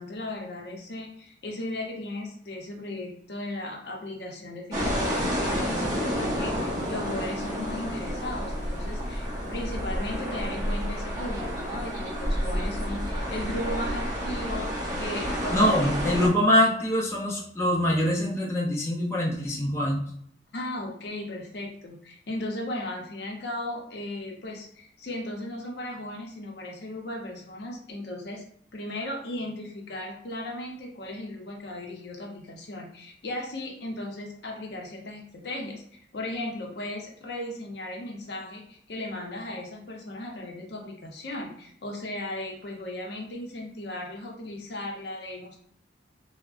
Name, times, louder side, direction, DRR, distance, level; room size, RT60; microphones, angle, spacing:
voice 1, 0.0-15.9 20.5-28.4 28.7-35.8 36.1-45.6, left 1 dB, 65° left, 1 dB, 0.6 m, -36 dB
sound 1, 4.7-16.3, equal, 20° right, 0.8 m, -30 dB
voice 2, 15.5-20.0, equal, 15° left, -4 dB, 0.4 m, -24 dB
3.5 x 2.0 x 2.3 m, 0.65 s
head